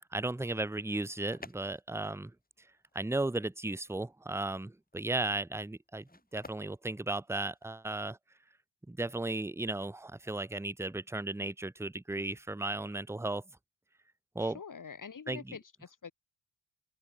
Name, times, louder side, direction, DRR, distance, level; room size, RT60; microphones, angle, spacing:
voice 1, 0.1-2.3 2.6-2.7 2.9-8.2 8.9-13.4 14.3-14.6 15.3-15.6, right 2 dB, 5° right, 1.1 m, -35 dB
sound 1, 0.9-7.9, left 2 dB, 20° left, 6.6 m, -55 dB
voice 2, 14.4-16.1, left 6 dB, 40° left, 3.9 m, -46 dB
open air
cardioid pair, 80°, 47 cm